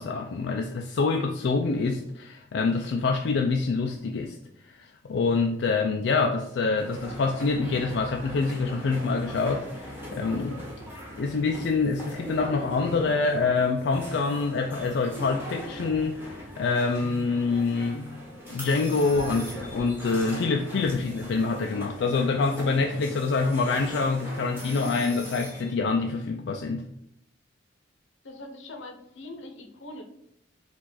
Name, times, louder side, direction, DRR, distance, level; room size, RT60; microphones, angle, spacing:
voice 1, 0.0-4.4 4.6-10.7 11.2-18.2 18.5-26.9, left 4 dB, 65° left, 3 dB, 0.4 m, -26 dB
sound 1, 6.8-25.7, equal, 10° right, 1.2 m, -40 dB
voice 2, 28.2-30.0, left 1 dB, 85° left, 3 dB, 0.9 m, -42 dB
4.6 x 2.5 x 4.0 m, 0.74 s
head